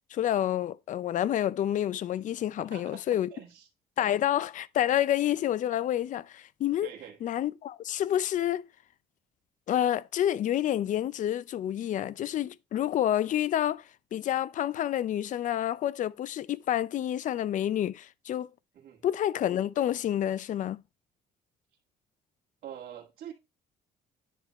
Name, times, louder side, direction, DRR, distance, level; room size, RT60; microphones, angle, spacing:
voice 1, 0.1-3.3 4.0-6.9 7.2-8.7 9.7-13.8 14.1-18.5 19.0-20.8, left 11 dB, 50° left, 0.5 m, -28 dB
voice 2, 2.6-3.7 6.8-7.2 18.7-19.0 22.6-23.3, right 10 dB, 55° right, 1.9 m, -45 dB
10.0 x 3.5 x 4.5 m
cardioid pair, 110°, 17 cm